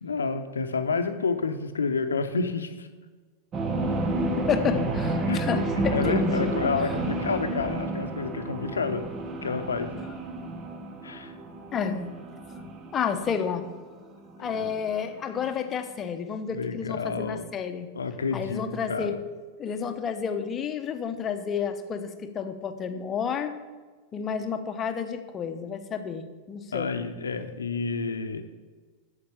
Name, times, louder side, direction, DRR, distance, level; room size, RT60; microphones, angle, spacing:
voice 1, 0.0-2.9 5.3-5.4 5.9-9.0 9.4-9.9 11.0-11.3 14.4-14.8 16.5-17.4 17.9-19.2 26.7-28.4, left 4 dB, 70° left, 8 dB, 0.8 m, -29 dB
sound 1, 3.5-15.5, right 2 dB, 30° right, 1.1 m, -30 dB
voice 2, 4.5-6.5 11.7-12.1 12.9-13.6 14.4-17.9 18.3-19.2 19.6-23.5 24.1-26.9, left 7 dB, 25° left, 7 dB, 0.9 m, -30 dB
8.6 x 7.0 x 7.0 m, 1.4 s
figure-of-eight pair, 90°, 0 cm